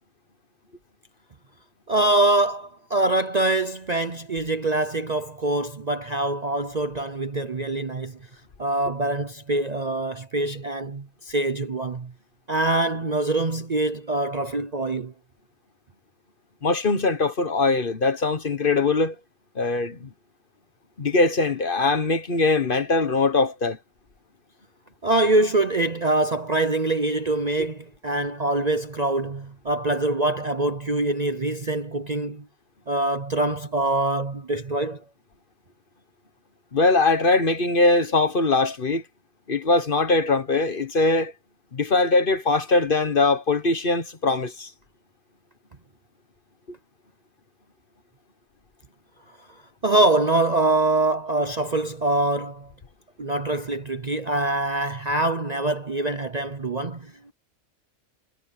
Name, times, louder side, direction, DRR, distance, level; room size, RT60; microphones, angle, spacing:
voice 1, 1.9-8.2 8.6-12.1 12.5-15.1 25.0-32.4 32.9-35.0 49.8-52.7 53.2-57.3, right 2 dB, 35° right, 0.8 m, -24 dB
voice 2, 16.6-19.1 19.5-20.1 21.0-23.8 36.7-39.0 39.5-41.3 41.7-44.7, left 3 dB, 40° left, 1.4 m, -21 dB
omnidirectional pair, 1.4 m